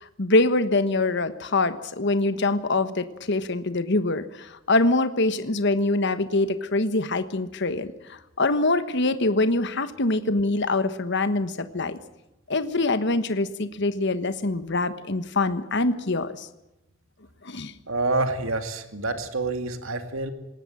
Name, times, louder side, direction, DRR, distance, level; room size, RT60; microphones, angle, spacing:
voice 1, 0.2-12.0 12.5-16.5 17.4-17.7, left 2 dB, 55° left, 11 dB, 1.3 m, -24 dB
voice 2, 17.9-20.3, right 2 dB, 80° right, 7 dB, 2.4 m, -27 dB
20.0 x 18.0 x 8.9 m, 0.90 s
head